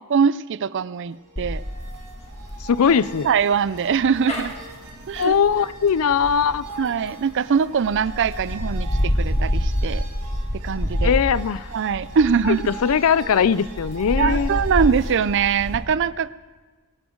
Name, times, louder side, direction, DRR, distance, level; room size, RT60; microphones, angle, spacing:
voice 1, 0.1-1.6 3.2-4.5 5.1-5.4 6.8-10.0 10.5-11.1 11.7-12.7 14.2-16.3, right 6 dB, 55° right, 18 dB, 0.4 m, -22 dB
sound 1, 0.9-15.8, right 3 dB, 85° right, 2.3 m, -42 dB
sound 2, 1.4-7.3 7.8-15.8, equal, 30° left, 1.6 m, -28 dB
voice 2, 2.6-3.3 5.2-6.6 11.0-11.7 12.5-14.5, left 7 dB, 65° left, 18 dB, 0.4 m, -20 dB
22.0 x 12.0 x 3.9 m, 1.3 s
head